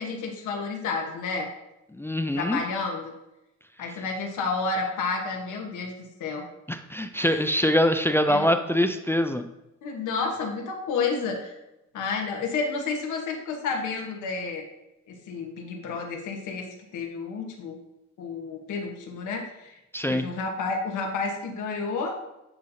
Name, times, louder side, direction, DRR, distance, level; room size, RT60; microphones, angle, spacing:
voice 1, 0.0-1.5 2.3-3.1 3.8-5.9 6.2-6.5 7.2-7.3 8.3-8.5 9.8-11.6 11.9-14.6 15.1-17.8 18.2-19.8 20.1-22.1, left 4 dB, 80° left, 2 dB, 1.2 m, -30 dB
voice 2, 1.9-2.6 6.7-9.5 19.9-20.2, equal, 10° left, 8 dB, 0.3 m, -24 dB
9.3 x 4.1 x 2.8 m, 0.92 s
cardioid pair, 90°, 30 cm